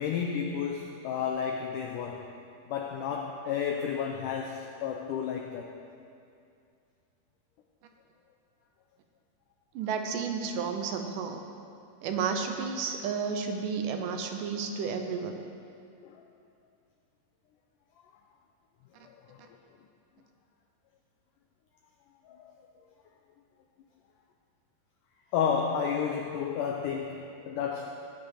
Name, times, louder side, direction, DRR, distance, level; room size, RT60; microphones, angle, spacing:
voice 1, 0.0-2.4 2.7-5.7 16.0-16.2 19.3-19.4 22.2-22.5 25.3-28.1, left 7 dB, 90° left, 2 dB, 1.8 m, -32 dB
voice 2, 9.8-11.4 12.0-15.4, right 6 dB, 75° right, 5 dB, 2.0 m, -32 dB
17.0 x 8.8 x 4.9 m, 2.5 s
omnidirectional pair, 4.6 m